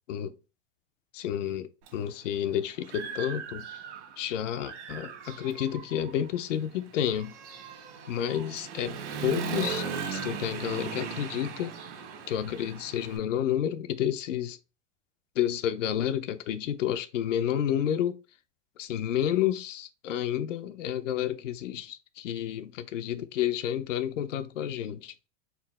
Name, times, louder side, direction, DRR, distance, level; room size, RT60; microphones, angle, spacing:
voice 1, 1.1-3.7 4.2-7.3 8.1-11.7 12.3-14.6 15.4-18.2 18.8-25.3, left 10 dB, 90° left, 0.6 m, -30 dB
Human voice / Motorcycle, 1.9-2.0 2.5-4.2 4.6-13.2, right 6 dB, 65° right, 1.5 m, -38 dB
4.4 x 2.1 x 4.1 m
supercardioid pair, 135°, 36 cm